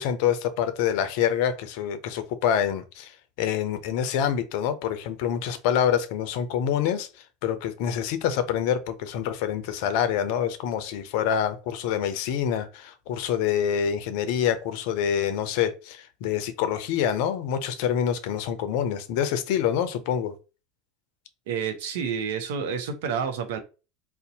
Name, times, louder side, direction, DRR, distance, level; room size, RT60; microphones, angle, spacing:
voice 1, 0.0-7.1 7.4-20.3, left 9 dB, 60° left, 0.5 m, -26 dB
voice 2, 21.5-23.6, right 6 dB, 70° right, 0.7 m, -29 dB
2.6 x 2.1 x 3.9 m
hypercardioid pair, 80°, 0 cm